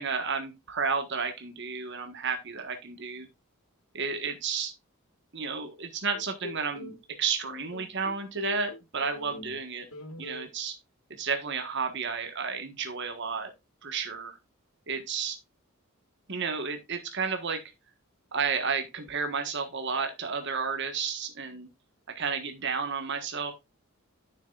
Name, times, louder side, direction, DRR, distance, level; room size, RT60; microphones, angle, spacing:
voice 1, 0.0-3.3 3.9-4.7 5.3-9.9 10.2-10.7 11.2-13.5 13.8-14.4 14.9-15.4 16.3-17.6 18.3-21.7 22.1-23.5, right 5 dB, 55° right, 1.4 m, -32 dB
sound 1, 6.1-7.0 7.4-9.6 9.9-10.5, left 3 dB, 90° left, 1.6 m, -41 dB
9.6 x 6.7 x 2.4 m
head